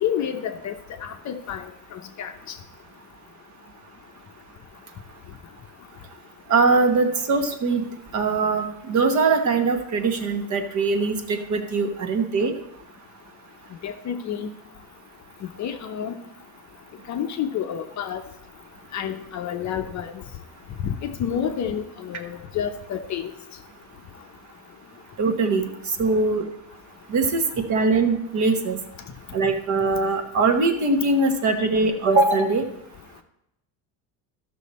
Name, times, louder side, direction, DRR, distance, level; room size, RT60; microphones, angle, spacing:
voice 1, 0.0-2.6 13.8-14.5 15.4-16.2 17.1-18.2 18.9-20.2 20.8-23.3, left 8 dB, 40° left, 6 dB, 0.7 m, -29 dB
voice 2, 6.5-7.8 8.1-12.5 25.2-25.6 26.0-26.5 27.1-27.4 27.7-28.8 29.3-32.6, right 3 dB, 40° right, 6 dB, 1.1 m, -21 dB
13.0 x 6.2 x 4.2 m, 0.82 s
cardioid pair, 140°, 45 cm